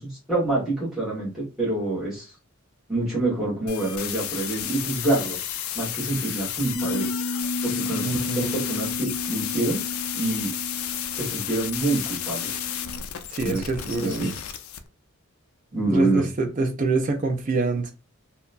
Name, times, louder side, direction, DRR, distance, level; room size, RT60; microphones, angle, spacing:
voice 1, 0.0-2.3 2.9-5.4 5.7-7.1 7.6-9.8 10.1-10.5 11.1-12.6 13.4-13.7 14.0-14.3 15.7-16.3, right 2 dB, ahead, 1.2 m, -26 dB
sound 1, 3.7-14.8, left 10 dB, 80° left, 0.4 m, -32 dB
Bass guitar, 6.7-13.0, left 2 dB, 45° left, 0.8 m, -33 dB
voice 2, 8.0-8.6 13.3-14.3 15.8-17.9, right 3 dB, 35° right, 0.5 m, -26 dB
2.7 x 2.2 x 2.5 m
head